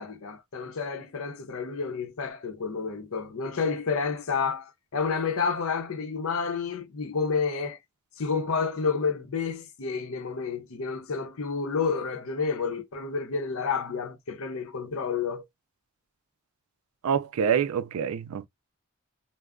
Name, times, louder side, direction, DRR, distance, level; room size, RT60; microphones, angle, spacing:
voice 1, 0.0-7.8 8.2-15.4, left 5 dB, 75° left, 0.6 m, -30 dB
voice 2, 17.0-18.5, right 7 dB, 85° right, 0.4 m, -26 dB
2.2 x 2.0 x 3.5 m
head